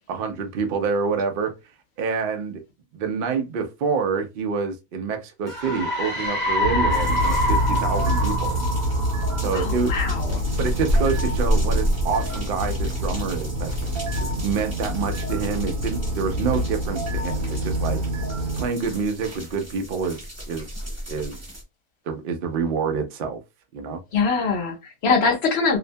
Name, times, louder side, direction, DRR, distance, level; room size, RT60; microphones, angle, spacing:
voice 1, 0.1-1.5 2.0-2.6 2.9-8.6 9.4-9.9 10.6-13.7 14.2-18.0 18.6-20.7 21.1-21.4 22.1-23.4 23.7-24.0, right 5 dB, 85° right, 0.4 m, -27 dB
sound 1, 5.5-10.0, left 1 dB, 35° left, 1.1 m, -26 dB
sound 2, 6.6-18.7, equal, 65° right, 1.0 m, -26 dB
sound 3, 6.9-21.6, equal, 15° right, 0.8 m, -31 dB
voice 2, 9.5-10.4 24.1-25.8, left 4 dB, 60° left, 0.7 m, -23 dB
2.8 x 2.1 x 2.6 m
omnidirectional pair, 1.6 m